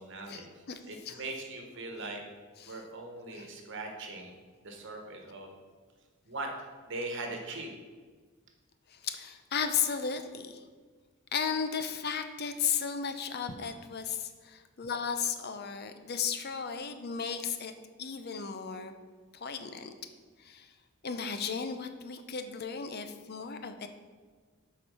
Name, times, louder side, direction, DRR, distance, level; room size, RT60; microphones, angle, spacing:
voice 1, 0.0-2.2 2.7-4.4 4.6-5.5 6.2-6.5 6.8-7.7, right 2 dB, 60° right, 2 dB, 1.3 m, -40 dB
voice 2, 8.9-10.6 11.3-17.7 18.0-18.9 19.3-19.9 20.4-20.7 21.0-23.9, left 6 dB, 50° left, 8 dB, 0.6 m, -35 dB
7.8 x 4.8 x 5.5 m, 1.5 s
head